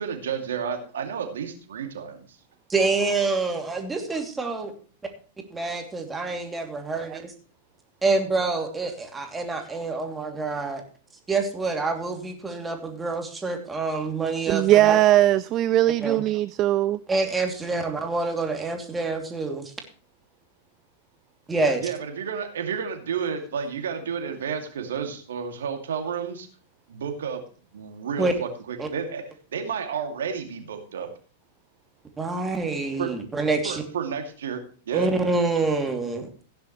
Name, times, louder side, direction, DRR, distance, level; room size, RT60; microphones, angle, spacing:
voice 1, 0.0-2.3 21.8-26.5 26.9-27.4 27.7-29.2 29.5-31.1 33.0-33.1 33.6-35.1, right 7 dB, 65° right, 2.5 m, -31 dB
voice 2, 2.7-4.7 5.5-7.3 8.0-10.8 11.3-15.0 16.0-16.2 17.1-19.7 21.5-21.9 28.2-28.3 28.8-28.9 32.2-33.8 34.9-36.3, right 3 dB, 15° right, 2.8 m, -27 dB
voice 3, 14.5-17.0, right 14 dB, 35° right, 0.4 m, -19 dB
16.0 x 10.5 x 3.2 m
figure-of-eight pair, 95°, 0 cm